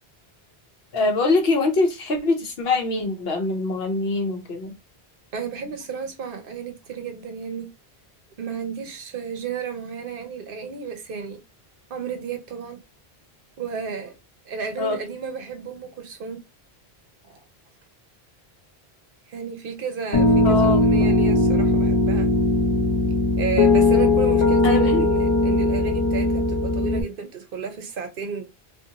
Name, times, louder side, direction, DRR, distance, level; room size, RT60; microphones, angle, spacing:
voice 1, 0.9-4.7 14.8-15.0 20.4-20.8 24.6-25.1, left 3 dB, 70° left, 1.0 m, -23 dB
voice 2, 5.3-7.7 8.4-11.4 11.9-12.8 13.6-14.1 14.5-16.4 17.2-17.3 19.3-22.3 23.4-28.4, right 6 dB, 60° right, 0.8 m, -32 dB
Piano, 20.1-27.0, left 2 dB, 40° left, 0.5 m, -19 dB
2.5 x 2.5 x 2.7 m
omnidirectional pair, 1.1 m